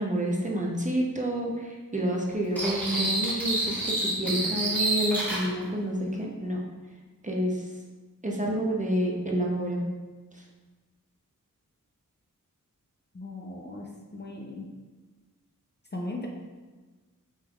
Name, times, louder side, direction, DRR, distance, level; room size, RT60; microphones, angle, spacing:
voice 1, 0.0-6.6 7.2-7.7 8.2-9.9 10.3-10.4, equal, 20° right, -2 dB, 0.7 m, -29 dB
sound 1, 2.6-5.5, right 2 dB, 5° left, 1.3 m, -28 dB
voice 2, 13.1-14.7 15.9-16.3, left 1 dB, 30° left, -1 dB, 0.5 m, -37 dB
5.4 x 3.3 x 2.3 m, 1.3 s
wide cardioid pair, 60°, 33 cm